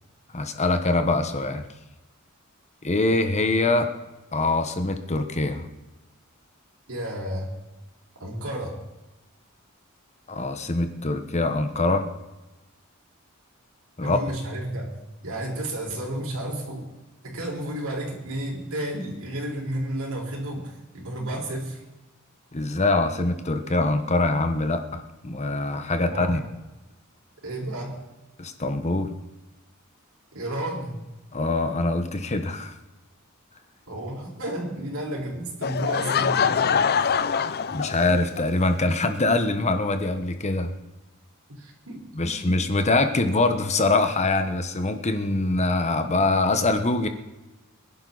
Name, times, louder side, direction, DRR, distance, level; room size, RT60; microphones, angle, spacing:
voice 1, 0.3-1.6 2.8-3.9 4.3-5.7 10.3-12.1 14.0-14.2 22.5-26.4 28.4-29.1 31.3-32.7 37.7-40.7 42.1-47.1, left 2 dB, 35° left, 8 dB, 1.2 m, -24 dB
voice 2, 6.9-7.5 8.2-8.8 14.0-14.9 15.2-16.9 17.2-21.8 26.0-26.4 27.4-28.0 30.3-31.0 33.9-36.8 41.5-42.5, right 1 dB, 85° right, -2 dB, 4.7 m, -32 dB
Laughter / Crowd, 35.6-38.5, left 6 dB, 50° left, 0.5 m, -24 dB
23.5 x 11.0 x 4.1 m, 1.1 s
head